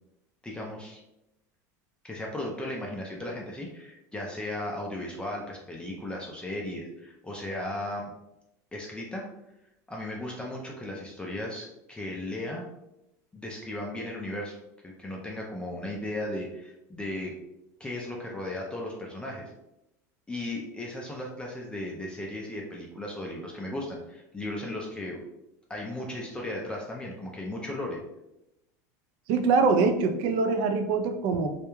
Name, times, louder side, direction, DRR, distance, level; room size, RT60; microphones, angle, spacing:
voice 1, 0.4-1.0 2.0-8.1 8.7-9.3 9.9-12.7 13.3-14.6 15.0-17.3 17.8-19.5 20.3-25.2 25.7-28.0, left 1 dB, 10° left, -1 dB, 0.4 m, -36 dB
voice 2, 29.3-31.5, right 4 dB, 60° right, 7 dB, 0.4 m, -24 dB
2.3 x 2.1 x 3.0 m, 0.88 s
supercardioid pair, 115°, 9 cm